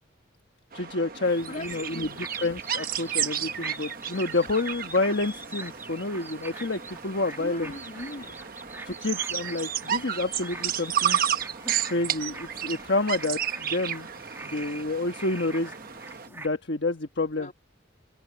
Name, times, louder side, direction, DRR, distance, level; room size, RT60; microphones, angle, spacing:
voice 1, 0.7-7.7 8.8-11.2 11.8-14.1 14.4-15.7 16.3-17.5, left 2 dB, 60° left, 1.3 m, -29 dB
sound 1, 0.7-16.3, right 9 dB, 50° right, 1.2 m, -32 dB
sound 2, 1.2-16.5, right 2 dB, 10° right, 1.4 m, -44 dB
voice 2, 1.5-2.3 7.4-8.5 17.4-17.5, left 2 dB, 45° left, 2.9 m, -40 dB
head